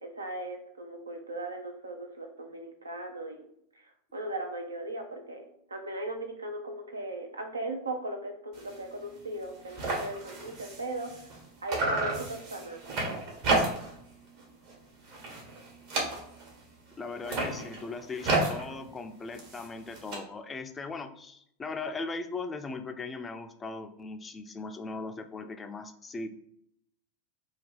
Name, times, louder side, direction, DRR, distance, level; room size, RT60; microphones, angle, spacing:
voice 1, 0.0-3.5 3.7-11.3 11.6-13.1, right 1 dB, 85° right, 4 dB, 0.5 m, -38 dB
sound 1, 8.5-8.8 9.1-9.2 9.4-11.4 11.7-14.0 14.4-14.7 15.1-16.6 17.1-20.2, right 2 dB, 55° right, 1.0 m, -32 dB
voice 2, 17.0-26.3, left 3 dB, 20° left, 7 dB, 0.3 m, -39 dB
2.5 x 2.2 x 3.8 m, 0.71 s
hypercardioid pair, 90°, 0 cm